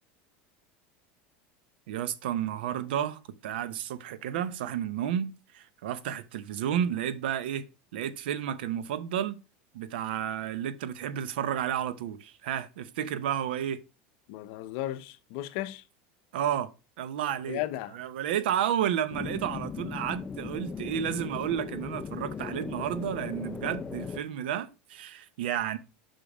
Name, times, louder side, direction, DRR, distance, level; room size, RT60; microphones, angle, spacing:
voice 1, 1.9-7.7 7.9-9.4 9.7-13.8 16.3-16.7 17.0-17.6 17.9-25.8, right 10 dB, 85° right, 0.8 m, -31 dB
voice 2, 14.3-15.8 17.5-18.0, left 15 dB, 65° left, 0.7 m, -35 dB
sound 1, 19.1-24.2, left 5 dB, 15° left, 0.4 m, -38 dB
5.7 x 5.2 x 5.0 m
supercardioid pair, 135°, 5 cm